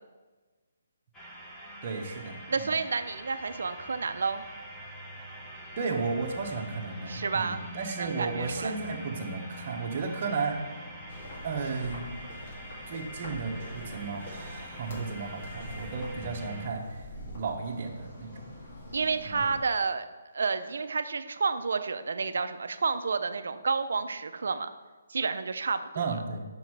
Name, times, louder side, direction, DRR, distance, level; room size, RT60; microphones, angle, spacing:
sound 1, 1.1-16.7, equal, 10° left, 1.1 m, -44 dB
voice 1, 1.8-2.7 5.8-10.6 11.4-12.1 12.9-17.1 17.3-18.5 19.3-19.4 26.0-26.5, right 4 dB, 40° right, 0 dB, 1.1 m, -34 dB
voice 2, 2.5-4.4 7.1-7.6 8.0-8.8 18.9-20.1 20.3-24.7 25.1-26.2, right 4 dB, 70° right, 10 dB, 0.5 m, -30 dB
sound 2, 11.1-19.6, equal, 50° left, 2.1 m, -44 dB
5.8 x 5.3 x 4.7 m, 1.3 s
hypercardioid pair, 155°, 0 cm